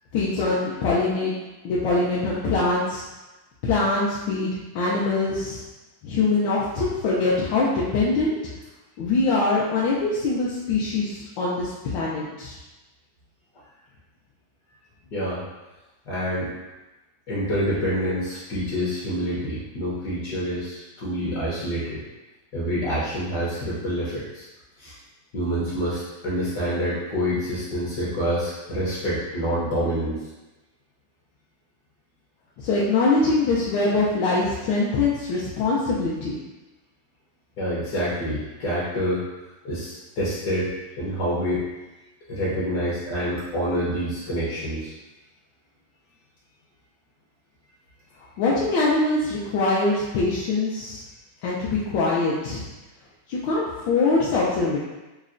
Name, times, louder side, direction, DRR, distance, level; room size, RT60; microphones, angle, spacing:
voice 1, 0.1-1.3 1.6-3.0 3.6-5.6 6.0-8.4 9.0-12.6 32.6-36.4 48.4-51.0 51.4-52.6 53.3-54.8, left 3 dB, 80° left, -6 dB, 1.3 m, -23 dB
voice 2, 15.1-15.4 16.1-16.5 17.3-22.0 22.5-24.5 24.8-24.9 25.3-30.2 37.6-39.2 39.6-40.7 41.0-41.6 42.3-44.9, equal, 65° left, -7 dB, 1.2 m, -27 dB
5.6 x 2.1 x 2.5 m, 1.1 s
omnidirectional pair, 2.1 m